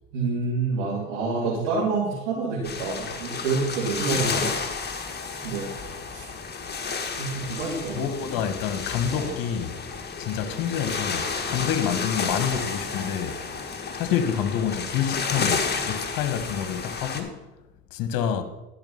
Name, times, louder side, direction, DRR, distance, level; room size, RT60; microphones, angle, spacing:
voice 1, 0.1-4.5 5.4-5.7 6.1-6.3 7.2-8.0 9.1-9.3, right 4 dB, 80° right, 3.0 m, -27 dB
sound 1, 2.6-17.2, left 5 dB, 25° left, 1.7 m, -31 dB
voice 2, 7.9-9.8 10.2-13.4 13.9-17.4 17.9-18.4, left 8 dB, 60° left, 1.3 m, -28 dB
12.5 x 5.8 x 5.6 m
hypercardioid pair, 75°, 40 cm